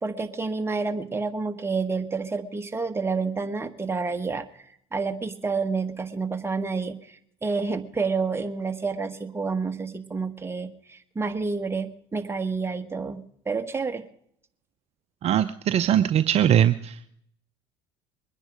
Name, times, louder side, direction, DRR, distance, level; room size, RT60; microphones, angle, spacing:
voice 1, 0.0-4.4 4.9-14.1, right 4 dB, 15° right, 7 dB, 1.4 m, -29 dB
voice 2, 15.2-17.0, right 10 dB, 45° right, 12 dB, 0.6 m, -21 dB
22.0 x 10.0 x 5.2 m, 0.69 s
hypercardioid pair, 75°, 14 cm